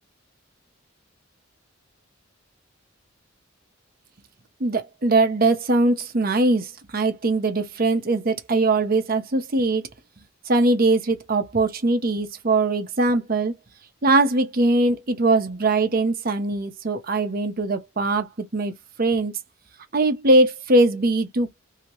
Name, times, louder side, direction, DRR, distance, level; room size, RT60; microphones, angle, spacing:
voice 1, 4.6-9.8 10.5-13.5 14.0-18.7 19.0-19.4 19.9-21.5, right 2 dB, 45° right, 0.8 m, -21 dB
2.8 x 2.8 x 2.9 m
head